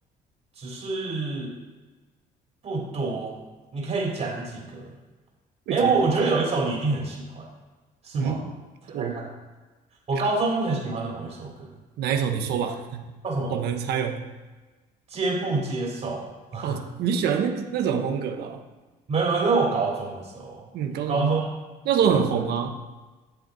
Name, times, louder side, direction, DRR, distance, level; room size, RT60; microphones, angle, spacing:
voice 1, 0.6-1.5 2.6-3.4 3.7-4.9 5.7-7.5 8.0-8.4 8.8-9.2 10.1-11.7 13.2-13.5 15.1-16.3 16.5-16.8 19.1-20.7 21.1-21.5, right 3 dB, 40° right, -3 dB, 3.1 m, -26 dB
voice 2, 8.1-8.5 8.9-9.2 12.0-13.1 13.5-14.2 16.6-18.6 20.7-21.3 21.8-22.8, right 7 dB, 75° right, 5 dB, 1.2 m, -26 dB
14.0 x 7.2 x 4.0 m, 1.2 s
cardioid pair, 110°, 17 cm